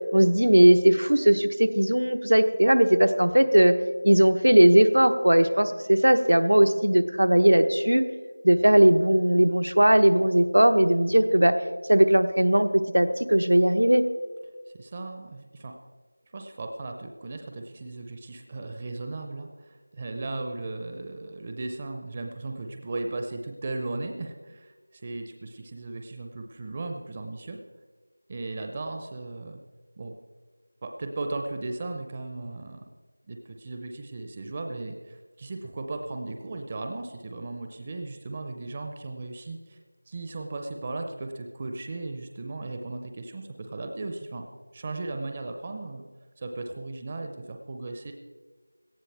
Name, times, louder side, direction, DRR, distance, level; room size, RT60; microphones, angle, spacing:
voice 1, 0.1-3.7 4.0-8.0 8.4-11.5 11.9-14.0, right 1 dB, 85° right, 9 dB, 1.0 m, -19 dB
voice 2, 14.7-15.8 16.3-27.6 28.3-29.6 30.0-30.1 30.8-32.8 33.3-39.8 40.1-44.4 44.7-46.1 46.4-48.1, right 2 dB, 20° right, 4 dB, 0.6 m, -36 dB
18.0 x 12.5 x 3.4 m, 1.4 s
figure-of-eight pair, 175°, 0 cm